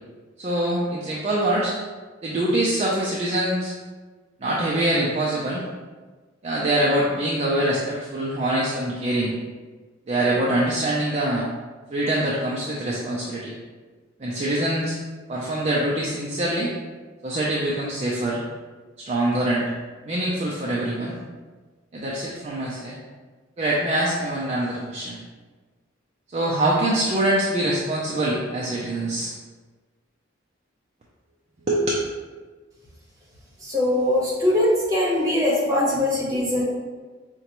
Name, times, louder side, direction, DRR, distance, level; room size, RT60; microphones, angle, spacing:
voice 1, 0.4-1.7 2.2-3.7 4.4-5.6 6.4-9.3 10.1-11.5 11.9-13.5 14.2-15.0 15.3-16.7 17.2-18.4 19.0-19.7 20.1-21.2 21.9-23.0 23.6-25.2 26.3-29.3 31.7-31.9, right 1 dB, 35° right, -5 dB, 0.4 m, -24 dB
voice 2, 33.6-36.7, left 1 dB, 20° right, -6 dB, 1.0 m, -21 dB
4.9 x 2.2 x 2.9 m, 1.4 s
head